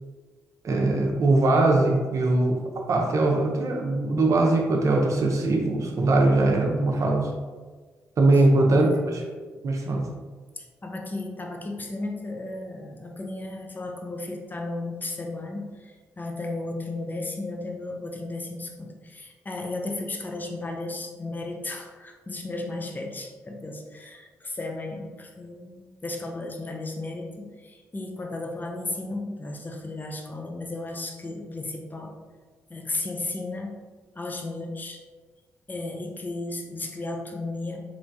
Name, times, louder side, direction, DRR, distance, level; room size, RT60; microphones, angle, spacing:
voice 1, 0.6-2.6 2.9-7.3 8.2-9.2 9.6-10.1, right 2 dB, 50° right, 0 dB, 0.7 m, -21 dB
voice 2, 8.7-9.0 10.6-32.1 32.7-33.8 34.2-35.0 35.7-37.8, left 2 dB, 25° left, 1 dB, 0.7 m, -34 dB
3.3 x 3.0 x 2.6 m, 1.4 s
hypercardioid pair, 40°, 7 cm